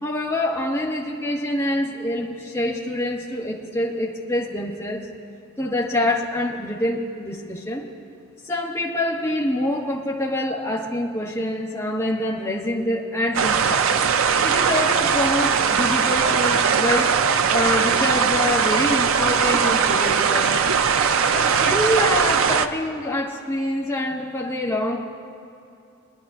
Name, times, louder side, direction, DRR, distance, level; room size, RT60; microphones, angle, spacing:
voice 1, 0.0-5.0 5.6-7.8 8.4-13.9 14.4-17.1 17.5-20.5 21.3-25.0, left 1 dB, 15° left, -3 dB, 1.3 m, -25 dB
sound 1, 13.3-22.7, right 6 dB, 80° right, 0.5 m, -20 dB
24.0 x 10.5 x 2.5 m, 2.7 s
head